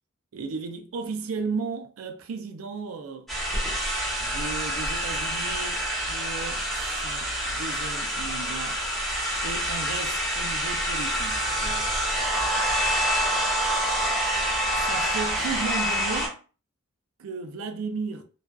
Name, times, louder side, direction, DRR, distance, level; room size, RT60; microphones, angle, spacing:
voice 1, 0.3-3.3 4.2-8.8 9.4-11.9 14.7-16.4 17.2-18.2, right 4 dB, 85° right, 0.4 m, -35 dB
sound 1, 3.3-16.3, equal, ahead, 0.9 m, -27 dB
2.4 x 2.3 x 2.2 m
head